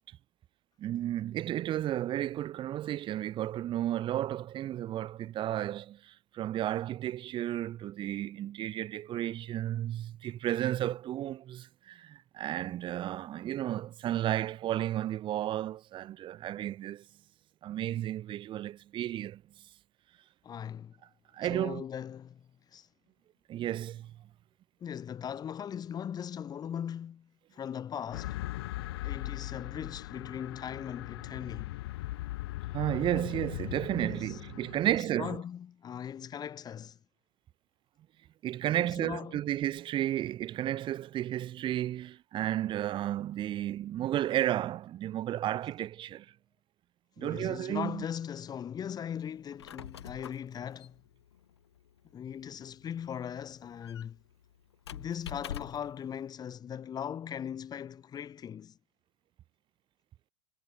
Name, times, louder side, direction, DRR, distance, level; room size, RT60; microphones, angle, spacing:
voice 1, 0.8-17.0 17.6-19.4 21.3-21.8 23.5-24.2 32.7-35.4 38.4-46.3 47.2-48.0, right 12 dB, 40° right, 2.4 m, -33 dB
voice 2, 20.4-20.9 21.4-22.9 24.8-28.4 29.0-31.8 33.2-33.4 33.9-34.4 34.7-37.0 38.7-39.4 47.2-51.0 52.1-54.2 54.9-58.8, left 8 dB, 30° left, 2.9 m, -39 dB
sound 1, 28.1-35.0, left 17 dB, 70° left, 2.3 m, -39 dB
Squeak, 49.4-56.0, left 9 dB, 85° left, 4.2 m, -47 dB
hypercardioid pair, 100°, 14 cm